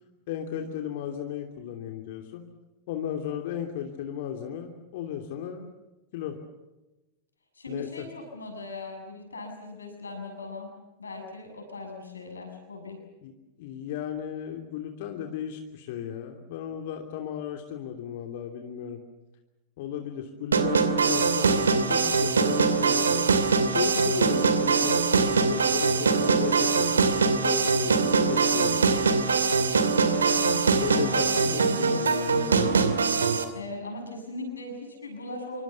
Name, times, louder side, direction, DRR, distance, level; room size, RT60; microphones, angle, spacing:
voice 1, 0.3-2.4 2.9-5.7 6.1-6.4 7.7-8.1 13.2-13.3 13.6-19.0 19.8-23.3 23.7-28.8 30.8-32.9, left 9 dB, 50° left, 4 dB, 2.9 m, -35 dB
voice 2, 7.6-10.7 11.0-13.0 30.0-31.3 33.5-35.6, left 3 dB, 75° left, 2 dB, 7.2 m, -39 dB
sound 1, 20.5-33.4, right 4 dB, 70° right, 2.6 m, -23 dB
27.5 x 25.0 x 7.0 m, 1.0 s
figure-of-eight pair, 90°, 0 cm